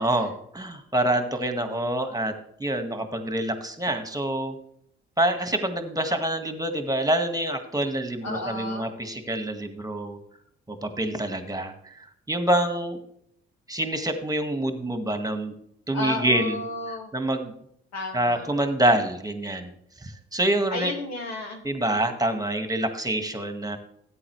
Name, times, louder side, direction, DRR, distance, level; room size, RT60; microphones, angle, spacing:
voice 1, 0.0-2.3 2.6-4.6 5.2-10.2 10.7-13.0 13.7-15.5 15.9-16.6 17.1-17.5 18.1-19.7 20.0-20.9 21.6-23.8, right 1 dB, 10° right, 7 dB, 1.8 m, -26 dB
voice 2, 8.2-8.9 15.9-17.1 17.9-18.5 20.7-21.6, left 2 dB, 60° left, 1 dB, 2.1 m, -32 dB
13.5 x 8.8 x 3.2 m, 0.69 s
hypercardioid pair, 45°, 31 cm